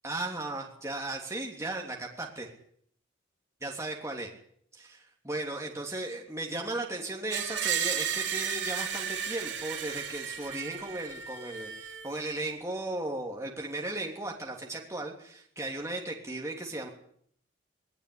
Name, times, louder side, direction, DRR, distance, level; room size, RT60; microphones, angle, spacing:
voice 1, 0.0-2.5 3.6-4.3 4.7-16.9, right 2 dB, 15° right, 0 dB, 3.1 m, -36 dB
Screech, 7.3-12.3, right 8 dB, 65° right, 3.0 m, -34 dB
20.5 x 18.0 x 9.8 m, 0.65 s
head